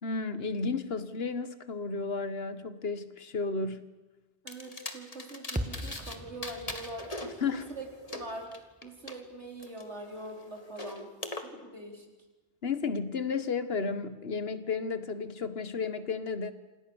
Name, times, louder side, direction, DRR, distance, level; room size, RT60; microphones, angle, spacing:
voice 1, 0.0-3.9 7.2-7.7 12.6-16.5, left 4 dB, 60° left, 12 dB, 1.7 m, -33 dB
voice 2, 4.4-7.2 7.5-11.1 11.4-12.1, right 2 dB, 80° right, 2 dB, 4.6 m, -43 dB
sound 1, 4.5-6.2 6.4-9.1 9.6-11.4, left 2 dB, 35° left, 2.1 m, -41 dB
sound 2, 5.5-9.8, equal, 5° right, 1.6 m, -41 dB
28.0 x 27.0 x 7.2 m, 1.2 s
omnidirectional pair, 1.2 m